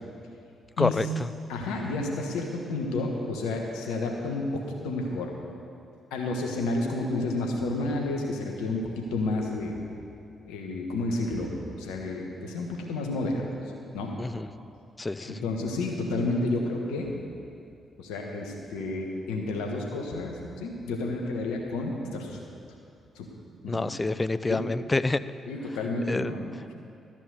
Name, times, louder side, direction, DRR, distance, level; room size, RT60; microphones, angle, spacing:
voice 1, 0.8-1.3 14.2-14.5 15.0-15.4 23.7-25.2 26.1-26.3, left 2 dB, 25° left, 14 dB, 0.4 m, -27 dB
voice 2, 1.5-5.3 6.1-8.8 9.1-9.7 10.5-11.5 11.8-13.4 13.9-14.1 15.2-17.1 18.0-22.4 23.1-23.3 23.6-23.9 24.5-24.7 25.5-26.7, left 2 dB, 75° left, 1 dB, 1.4 m, -30 dB
13.0 x 6.1 x 8.0 m, 2.6 s
hypercardioid pair, 40°, 0 cm